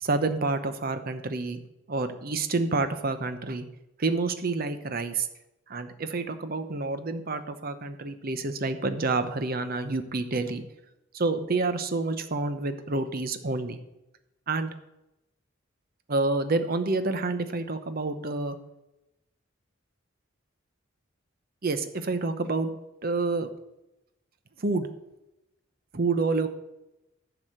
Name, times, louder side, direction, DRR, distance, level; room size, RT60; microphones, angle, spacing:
voice 1, 0.0-3.7 4.0-5.3 5.7-10.6 11.1-13.8 14.5-14.7 16.1-18.6 21.6-22.7 23.0-23.5 24.6-24.9 25.9-26.5, right 3 dB, 45° right, 9 dB, 0.8 m, -28 dB
11.0 x 4.9 x 7.8 m, 0.93 s
head